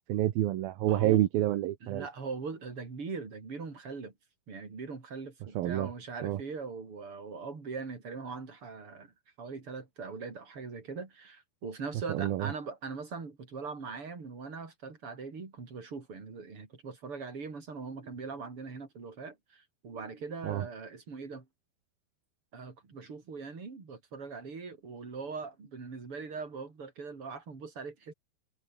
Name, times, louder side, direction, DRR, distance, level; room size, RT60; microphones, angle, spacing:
voice 1, 0.0-2.1 5.6-5.9 6.2-6.4 12.1-12.5 20.4-20.6, right 14 dB, 70° right, 2.8 m, -28 dB
voice 2, 0.9-1.3 1.8-4.1 4.5-21.5 22.5-28.1, right 4 dB, 30° right, 5.2 m, -41 dB
omnidirectional pair, 5.0 m